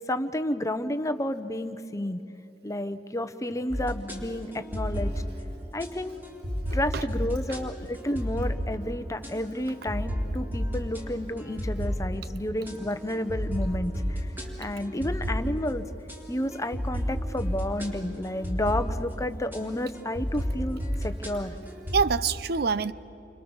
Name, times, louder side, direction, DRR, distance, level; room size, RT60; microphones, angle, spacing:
voice 1, 0.1-2.2 2.6-5.1 5.7-6.2 6.7-14.3 14.6-15.9 16.3-21.5, left 1 dB, 20° left, 10 dB, 1.0 m, -31 dB
sound 1, 3.7-22.0, equal, 10° right, 3.6 m, -33 dB
voice 2, 6.7-7.0 14.4-14.7 21.9-22.9, right 5 dB, 65° right, 16 dB, 0.6 m, -27 dB
29.5 x 25.5 x 7.2 m, 2.8 s
head